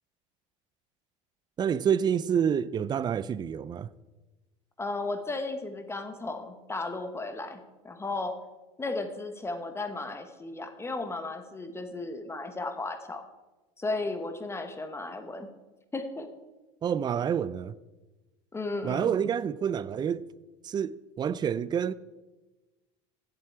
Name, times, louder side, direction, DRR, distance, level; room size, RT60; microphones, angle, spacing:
voice 1, 1.6-3.9 16.8-17.7 18.8-20.3 20.6-21.9, right 8 dB, 25° right, 0.4 m, -28 dB
voice 2, 4.8-8.4 8.8-13.3 13.8-15.5 15.9-16.3 18.5-19.1, left 2 dB, 15° left, 1.2 m, -35 dB
15.0 x 7.6 x 4.7 m
supercardioid pair, 100°, 16 cm